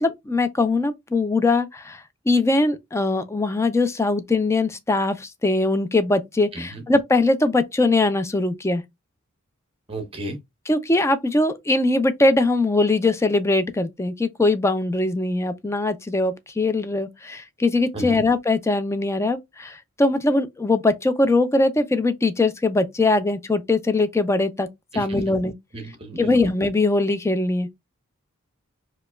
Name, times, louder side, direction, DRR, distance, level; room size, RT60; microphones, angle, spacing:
voice 1, 0.0-8.8 10.7-24.7 24.9-25.5 26.2-27.7, left 2 dB, 15° left, 0.4 m, -21 dB
voice 2, 9.9-10.4 17.9-18.2 24.9-25.2 25.7-26.3, right 1 dB, 25° right, 1.0 m, -33 dB
4.9 x 2.2 x 2.2 m
head